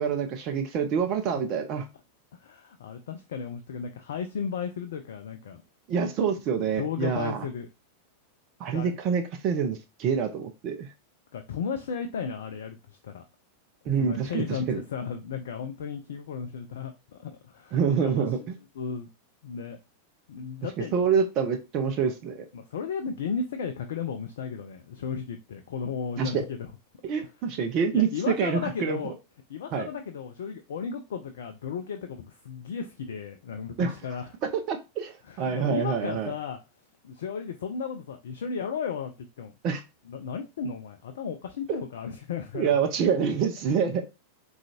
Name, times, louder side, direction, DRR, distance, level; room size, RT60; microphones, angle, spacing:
voice 1, 0.0-1.8 5.9-7.4 8.6-10.9 13.9-14.8 17.7-18.6 20.9-22.5 26.2-26.4 27.1-29.1 29.7-29.9 33.8-33.9 34.7-36.3 39.6-39.8 41.7-41.8 42.5-44.0, right 6 dB, 40° right, 0.4 m, -26 dB
voice 2, 2.3-5.6 6.8-7.7 8.7-8.9 11.3-13.2 14.0-18.5 18.8-19.1 19.4-19.8 20.3-20.9 22.5-26.7 27.9-29.1 29.5-34.3 35.2-36.6 37.0-39.5 40.1-42.8, left 6 dB, 60° left, 0.3 m, -35 dB
3.7 x 2.3 x 2.7 m
figure-of-eight pair, 90°, 0 cm